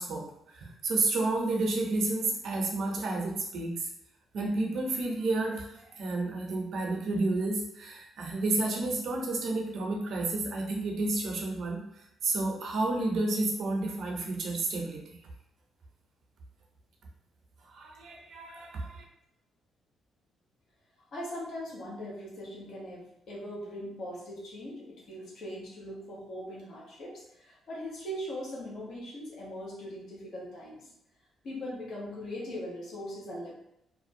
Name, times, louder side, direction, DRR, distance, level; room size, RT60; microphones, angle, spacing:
voice 1, 0.0-3.9 4.3-11.8 12.2-15.2 17.7-19.0, right 2 dB, 65° right, 0 dB, 0.6 m, -31 dB
voice 2, 21.1-30.9 31.4-33.5, equal, 60° left, -5 dB, 0.9 m, -40 dB
2.5 x 2.1 x 2.6 m, 0.82 s
cardioid pair, 90°, 0 cm